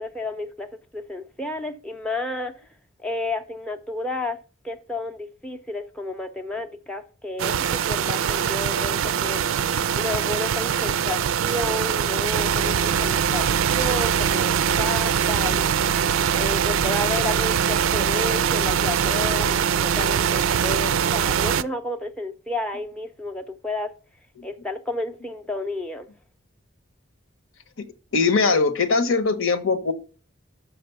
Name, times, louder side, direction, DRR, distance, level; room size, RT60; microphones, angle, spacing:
voice 1, 0.0-2.7 3.0-4.4 4.6-9.5 9.9-23.9 24.4-26.1, left 2 dB, 5° left, 0.5 m, -31 dB
sound 1, 7.4-21.6, right 8 dB, 85° right, 0.4 m, -22 dB
voice 2, 28.1-29.9, left 4 dB, 85° left, 1.0 m, -20 dB
6.3 x 5.8 x 6.8 m
head